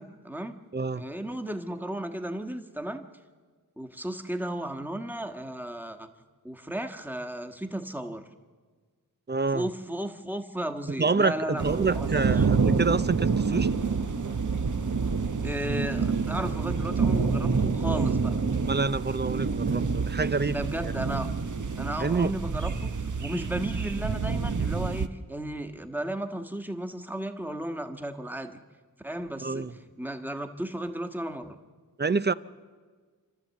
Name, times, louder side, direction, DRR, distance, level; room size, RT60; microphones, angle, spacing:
voice 1, 0.0-0.6 0.9-3.0 3.8-6.1 6.4-8.3 9.5-12.4 15.3-18.3 20.5-21.3 21.8-22.9 23.2-28.6 29.0-29.7 30.0-31.6, right 1 dB, 5° right, 1.4 m, -34 dB
voice 2, 0.7-1.0 9.3-9.7 11.0-13.7 18.7-20.9 22.0-22.4 29.4-29.7 32.0-32.3, right 4 dB, 30° right, 0.5 m, -27 dB
sound 1, 11.6-25.1, right 5 dB, 55° right, 1.0 m, -27 dB
28.0 x 12.5 x 8.3 m
wide cardioid pair, 70°, 36 cm